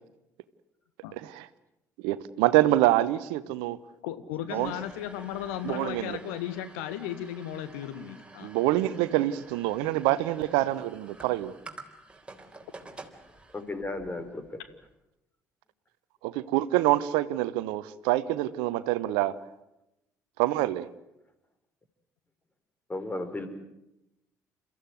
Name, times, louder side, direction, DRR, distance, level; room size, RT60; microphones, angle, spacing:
voice 1, 2.0-3.8 4.5-4.7 5.6-6.2 8.4-11.5 16.2-19.3 20.4-20.9, right 15 dB, 65° right, 16 dB, 1.0 m, -26 dB
voice 2, 4.0-8.5, left 11 dB, 70° left, 11 dB, 1.5 m, -35 dB
sound 1, 4.6-14.9, right 2 dB, 10° right, 3.9 m, -50 dB
voice 3, 13.5-14.6 22.9-23.5, left 2 dB, 20° left, 9 dB, 4.6 m, -34 dB
30.0 x 15.0 x 9.5 m, 0.89 s
figure-of-eight pair, 50°, 9 cm